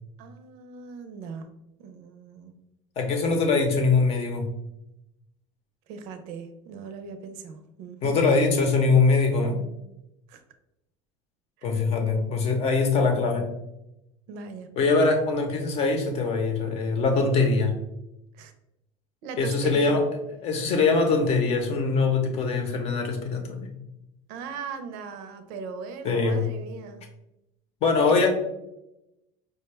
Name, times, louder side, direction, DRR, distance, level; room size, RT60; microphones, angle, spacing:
voice 1, 0.2-1.5 1.8-2.5 5.9-8.2 10.3-10.4 11.6-11.8 14.3-14.7 18.3-18.5 19.2-20.0 24.3-27.0 28.1-28.3, right 5 dB, 65° right, 8 dB, 0.6 m, -39 dB
voice 2, 3.0-4.5 8.0-9.6 11.6-13.5 14.8-17.7 19.4-20.0 20.4-23.7 26.0-26.4 27.8-28.3, left 4 dB, 40° left, 4 dB, 0.7 m, -22 dB
4.5 x 2.2 x 3.3 m, 0.88 s
cardioid pair, 140°, 16 cm